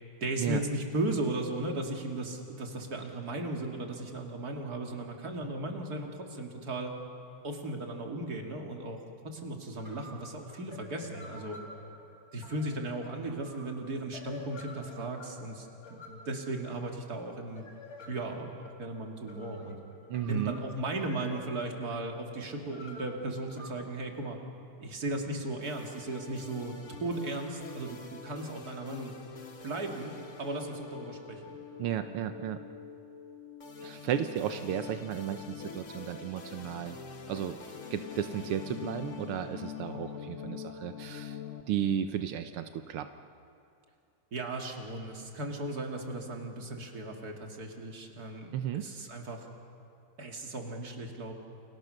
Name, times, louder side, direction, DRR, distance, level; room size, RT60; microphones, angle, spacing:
voice 1, 0.2-6.9 7.4-9.0 9.2-11.6 12.3-17.7 18.1-19.8 20.3-24.4 24.8-29.1 29.6-31.5 44.3-49.5 50.2-51.3, right 2 dB, 30° right, 2 dB, 2.7 m, -36 dB
sound 1, 9.4-9.5 9.8-23.7, left 2 dB, 20° left, 3.5 m, -50 dB
voice 2, 20.1-20.6 31.8-32.6 33.8-37.0 37.3-37.6 37.9-41.4 41.7-43.1 48.5-48.9, right 10 dB, 80° right, 8 dB, 1.2 m, -34 dB
sound 2, 25.6-41.6, left 7 dB, 50° left, 0.9 m, -44 dB
29.0 x 29.0 x 6.6 m, 2.5 s
omnidirectional pair, 3.6 m